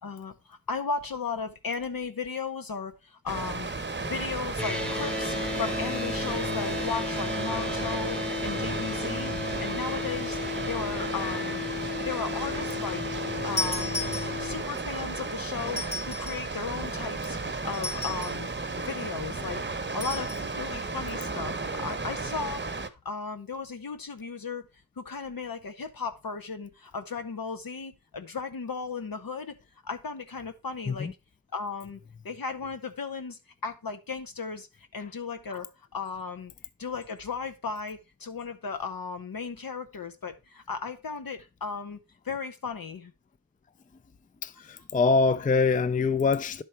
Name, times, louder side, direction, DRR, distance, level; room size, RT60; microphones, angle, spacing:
voice 1, 0.0-3.7 4.0-9.3 9.6-13.0 13.4-17.4 17.6-18.5 18.7-19.6 19.9-22.7 23.0-24.6 25.0-29.5 29.8-31.1 31.5-32.0 32.2-36.5 36.8-42.0 42.2-43.1, left 5 dB, 70° left, 0.8 m, -36 dB
Water, 3.3-22.9, right 3 dB, 30° right, 0.9 m, -34 dB
sound 1, 4.6-14.6, left 4 dB, 5° left, 1.0 m, -34 dB
sound 2, 13.6-14.7 15.7-16.5 17.7-18.5 20.0-20.5, left 2 dB, 85° left, 3.8 m, -35 dB
voice 2, 44.4-46.6, left 4 dB, 25° left, 0.4 m, -24 dB
10.5 x 4.5 x 4.4 m
wide cardioid pair, 45°, 37 cm